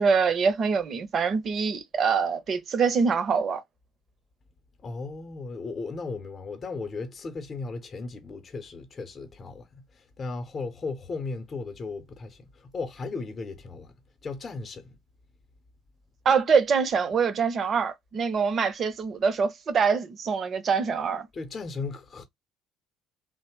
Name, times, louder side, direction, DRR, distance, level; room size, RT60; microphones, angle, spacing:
voice 1, 0.0-3.6 16.2-21.3, right 5 dB, 45° right, 0.6 m, -24 dB
voice 2, 4.8-13.9 14.2-15.0 21.3-22.2, left 4 dB, 40° left, 0.7 m, -36 dB
2.7 x 2.0 x 3.1 m
hypercardioid pair, 60°, 0 cm